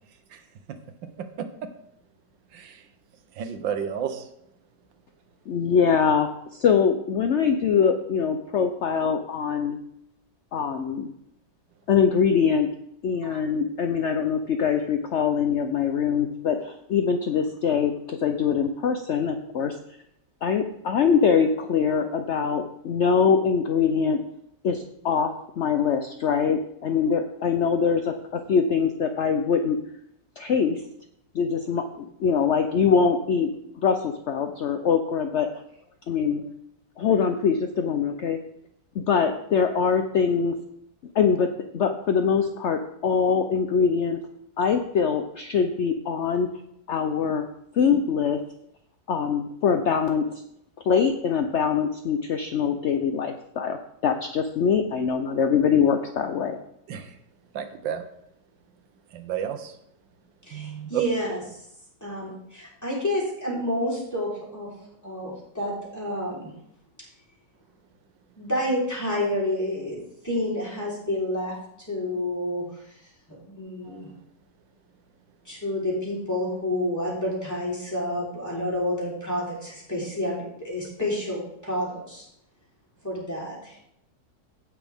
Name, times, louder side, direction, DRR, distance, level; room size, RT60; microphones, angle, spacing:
voice 1, 2.5-2.8 3.3-4.3 13.2-13.4 56.9-57.2 57.5-58.0 59.1-59.8 60.5-61.0 73.8-74.0, right 8 dB, 90° right, 8 dB, 1.6 m, -32 dB
voice 2, 5.5-9.8 10.5-11.1 11.9-12.7 13.0-19.8 20.4-24.2 24.6-29.8 30.4-30.8 31.3-31.8 32.2-33.5 33.8-35.5 36.1-36.4 37.0-38.4 38.9-40.5 41.1-44.2 44.6-46.5 46.9-47.4 47.7-48.4 49.1-50.2 50.9-56.6, left 6 dB, 70° left, 6 dB, 0.7 m, -23 dB
voice 3, 60.5-61.4 62.0-64.7 65.0-66.5 68.4-70.0 70.2-71.6 71.9-72.7 73.4-74.1 75.5-82.3 83.0-83.8, left 1 dB, 10° left, -6 dB, 3.8 m, -29 dB
16.5 x 6.1 x 3.5 m, 0.75 s
omnidirectional pair, 1.9 m